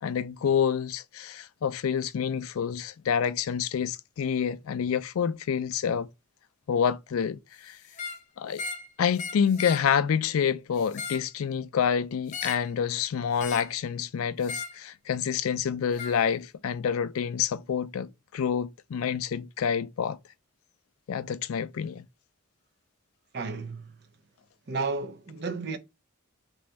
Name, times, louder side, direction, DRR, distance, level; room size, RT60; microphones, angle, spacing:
voice 1, 0.0-6.1 6.7-7.8 8.4-8.6 9.0-20.2 21.1-22.0, left 7 dB, 90° left, 0.4 m, -28 dB
sound 1, 7.9-8.2 8.5-8.9 9.2-9.9 10.8-11.3 12.3-12.7 13.4-13.8 14.4-14.8 16.0-16.2, left 5 dB, 35° left, 0.5 m, -37 dB
voice 2, 23.3-23.9 24.7-25.8, right 4 dB, 50° right, 0.6 m, -32 dB
3.1 x 2.6 x 3.3 m
head